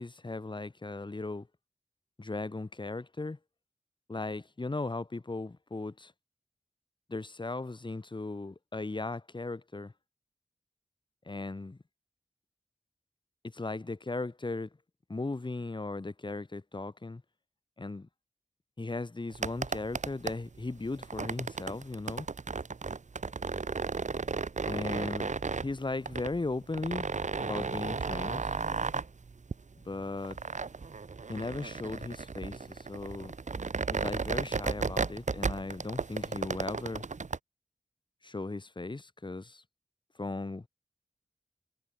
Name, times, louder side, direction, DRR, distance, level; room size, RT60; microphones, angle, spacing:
voice 1, 0.0-1.5 2.2-3.4 4.1-6.1 7.1-9.9 11.3-11.8 13.4-14.7 15.1-17.2 17.8-18.1 18.8-22.3 24.7-27.1 27.4-28.5 29.9-30.4 31.3-33.3 33.9-37.0 38.2-39.6 40.2-40.7, left 2 dB, 40° left, 2.1 m, -37 dB
sound 1, 19.3-37.4, right 4 dB, 70° right, 2.0 m, -34 dB
wide cardioid pair, 85°, 13 cm